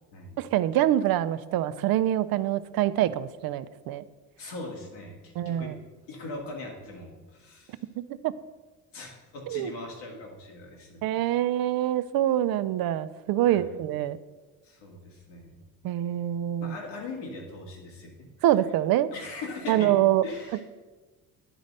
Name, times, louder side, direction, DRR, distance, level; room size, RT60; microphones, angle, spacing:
voice 1, 0.4-4.0 5.4-5.8 8.0-8.3 9.5-9.7 11.0-14.2 15.8-16.7 18.4-19.1 19.7-20.2, right 12 dB, 60° right, 14 dB, 0.5 m, -25 dB
voice 2, 4.4-5.7 6.1-7.8 8.9-11.4 13.4-13.8 14.6-15.5 16.6-18.1 19.1-19.9 20.2-20.6, left 2 dB, 75° left, 0 dB, 2.3 m, -40 dB
10.0 x 4.0 x 6.5 m, 1.3 s
supercardioid pair, 70°, 42 cm